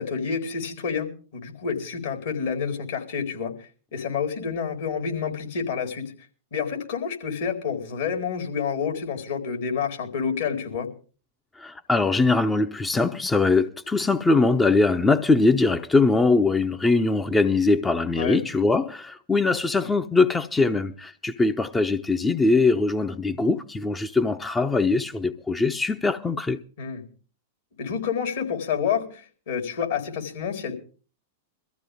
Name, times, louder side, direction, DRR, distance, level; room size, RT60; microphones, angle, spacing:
voice 1, 0.0-6.1 6.5-10.9 18.2-18.4 26.8-27.0 27.8-30.8, left 6 dB, 70° left, 4.3 m, -29 dB
voice 2, 11.6-26.6, left 3 dB, 15° left, 0.8 m, -22 dB
22.5 x 14.5 x 3.6 m
figure-of-eight pair, 100°, 0 cm